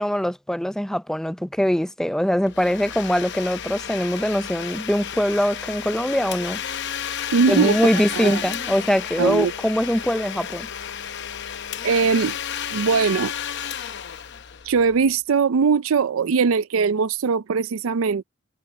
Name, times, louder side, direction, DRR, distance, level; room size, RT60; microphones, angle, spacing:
voice 1, 0.0-6.6 7.5-10.7, equal, 5° left, 0.5 m, -22 dB
Domestic sounds home sounds, 2.5-15.0, left 9 dB, 55° left, 0.8 m, -32 dB
voice 2, 7.3-7.8 8.1-8.4 9.2-9.5 11.8-12.4 12.7-13.3 14.6-18.2, right 5 dB, 75° right, 0.5 m, -20 dB
head